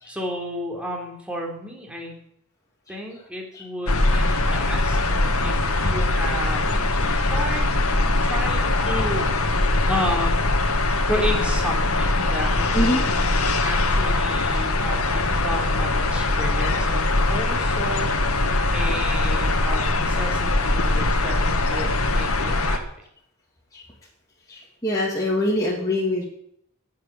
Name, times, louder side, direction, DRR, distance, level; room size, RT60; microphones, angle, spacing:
voice 1, 0.1-2.1 2.9-5.0 5.4-5.6 5.8-6.7 7.2-7.7 8.2-9.2 9.9-10.6 11.0-13.0 13.6-18.1 18.7-22.8, equal, 5° right, 0 dB, 4.0 m, -32 dB
sound 1, 3.9-22.8, left 2 dB, 85° left, 2.2 m, -22 dB
voice 2, 24.5-26.2, left 1 dB, 15° left, -4 dB, 3.0 m, -24 dB
20.0 x 8.0 x 8.7 m, 0.70 s
head